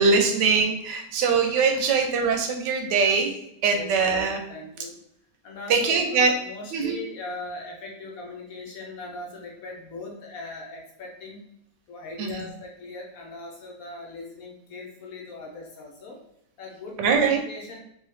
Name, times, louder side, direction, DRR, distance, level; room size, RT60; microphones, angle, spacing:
voice 1, 0.0-3.3 3.6-4.4 5.7-6.3 6.7-7.0 12.2-12.4 17.0-17.4, right 5 dB, 80° right, 3 dB, 1.2 m, -22 dB
voice 2, 3.7-4.2 4.5-5.0 5.4-11.4 11.9-16.2 16.6-17.8, left 2 dB, 65° left, -1 dB, 1.0 m, -39 dB
3.4 x 2.7 x 3.1 m, 0.77 s
omnidirectional pair, 1.9 m